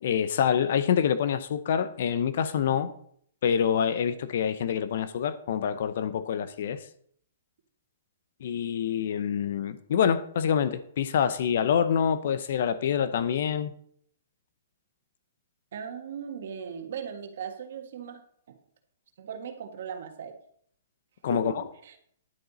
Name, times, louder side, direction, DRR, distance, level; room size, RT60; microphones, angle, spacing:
voice 1, 0.0-2.9 3.4-6.9 8.4-13.7 21.2-21.6, left 8 dB, 60° left, 0.7 m, -26 dB
voice 2, 15.7-18.2 18.5-18.6 19.2-20.4 21.3-21.9, right 7 dB, 60° right, 1.6 m, -38 dB
10.5 x 7.9 x 4.2 m
hypercardioid pair, 160°, 0 cm